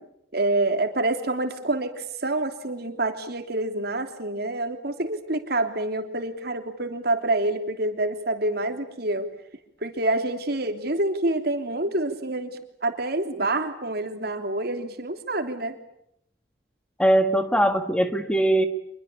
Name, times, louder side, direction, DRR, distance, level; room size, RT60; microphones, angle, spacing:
voice 1, 0.3-9.3 9.8-15.8, right 2 dB, 60° right, 6 dB, 3.2 m, -27 dB
voice 2, 17.0-18.7, right 1 dB, 5° left, 8 dB, 1.5 m, -21 dB
26.0 x 22.5 x 8.6 m, 0.75 s
head